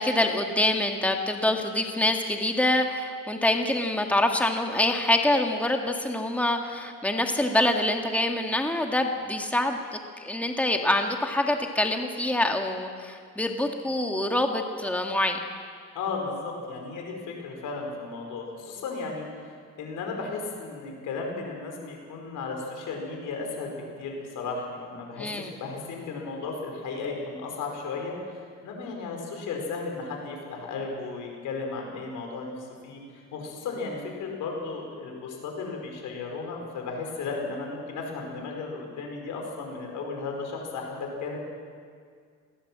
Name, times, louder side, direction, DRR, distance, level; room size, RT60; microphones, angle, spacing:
voice 1, 0.0-15.4 25.2-25.5, left 1 dB, 5° left, 3 dB, 1.8 m, -25 dB
voice 2, 15.9-33.0 33.3-41.4, left 4 dB, 85° left, 2 dB, 5.0 m, -35 dB
21.0 x 17.0 x 7.5 m, 2.1 s
cardioid pair, 90°, 30 cm